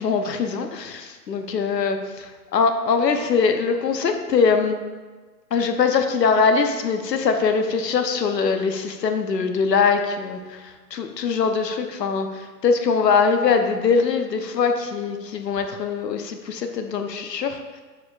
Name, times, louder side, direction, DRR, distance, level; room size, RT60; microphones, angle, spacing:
voice 1, 0.0-2.0 2.5-4.7 5.5-17.6, left 5 dB, 75° left, 6 dB, 0.8 m, -22 dB
6.7 x 6.5 x 2.4 m, 1.4 s
hypercardioid pair, 175°, 50 cm